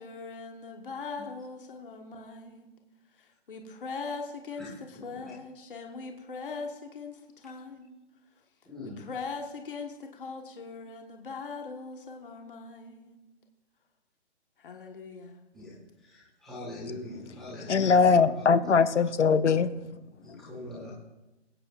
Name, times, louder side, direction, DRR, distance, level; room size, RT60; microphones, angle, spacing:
voice 1, 0.0-2.8 3.1-4.7 5.0-8.0 8.8-13.3 14.6-15.4, left 4 dB, 45° left, 1.6 m, -40 dB
voice 2, 4.9-5.3 7.4-7.5 8.6-9.0 15.5-17.9 18.3-18.4 20.2-20.9, left 1 dB, ahead, 1.6 m, -43 dB
voice 3, 17.7-20.1, left 5 dB, 75° left, 0.8 m, -22 dB
22.5 x 9.0 x 2.5 m
hypercardioid pair, 170°, 35 cm